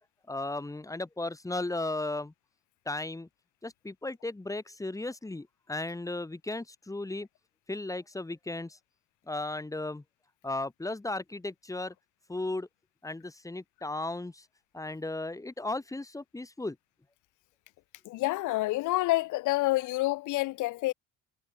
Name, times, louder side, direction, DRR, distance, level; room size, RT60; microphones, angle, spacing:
voice 1, 0.3-2.3 2.9-3.3 3.6-7.3 7.7-8.8 9.3-10.0 10.4-11.9 12.3-12.7 13.0-14.5 14.7-16.8, left 2 dB, 10° left, 4.1 m, -35 dB
voice 2, 18.0-20.9, left 19 dB, 70° left, 1.7 m, -28 dB
cardioid pair, 120°, 31 cm